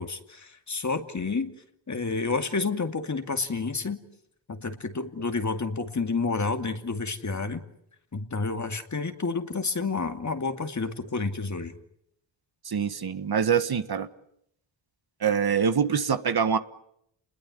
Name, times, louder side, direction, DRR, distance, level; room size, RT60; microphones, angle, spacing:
voice 1, 0.0-1.5 1.9-4.0 4.5-7.6 8.1-11.7, left 4 dB, 40° left, 7 dB, 2.4 m, -30 dB
voice 2, 12.6-14.1 15.2-16.6, right 7 dB, 55° right, 11 dB, 1.5 m, -24 dB
29.5 x 21.0 x 9.2 m, 0.76 s
cardioid pair, 85°, 45 cm